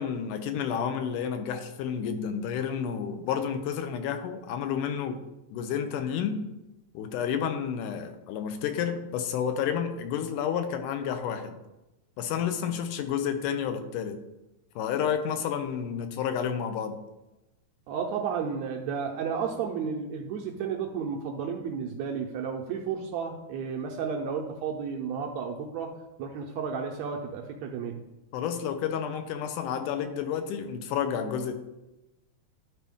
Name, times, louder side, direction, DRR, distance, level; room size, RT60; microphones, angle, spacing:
voice 1, 0.0-5.2 5.5-6.4 6.9-11.6 12.2-14.2 14.8-17.0 28.3-31.5, left 8 dB, 85° left, 8 dB, 2.2 m, -30 dB
voice 2, 17.9-28.0, right 6 dB, 80° right, 1 dB, 1.7 m, -32 dB
11.5 x 4.1 x 3.5 m, 0.97 s
omnidirectional pair, 3.6 m